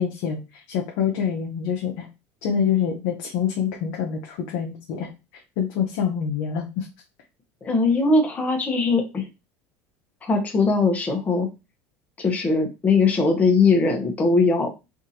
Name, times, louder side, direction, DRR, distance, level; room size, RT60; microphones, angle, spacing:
voice 1, 0.0-2.1 2.4-5.1 5.6-6.9, left 8 dB, 75° left, 0 dB, 0.7 m, -26 dB
voice 2, 7.6-9.3 10.2-11.5 12.2-14.7, left 3 dB, 20° left, 2 dB, 0.8 m, -20 dB
3.6 x 2.5 x 2.7 m, 0.26 s
supercardioid pair, 115°, 7 cm